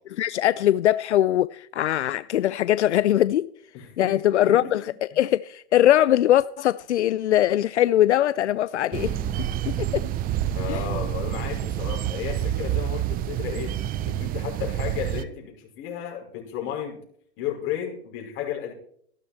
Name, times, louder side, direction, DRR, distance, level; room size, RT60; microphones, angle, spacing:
voice 1, 0.2-3.5 4.0-10.0 10.7-10.8, left 12 dB, 80° left, 0.5 m, -21 dB
voice 2, 3.7-4.8 5.1-5.2 10.5-17.0 17.4-18.7, left 9 dB, 40° left, 5.6 m, -33 dB
sound 1, 8.9-15.2, right 12 dB, 25° right, 0.8 m, -28 dB
14.5 x 12.0 x 4.4 m
hypercardioid pair, 120°, 34 cm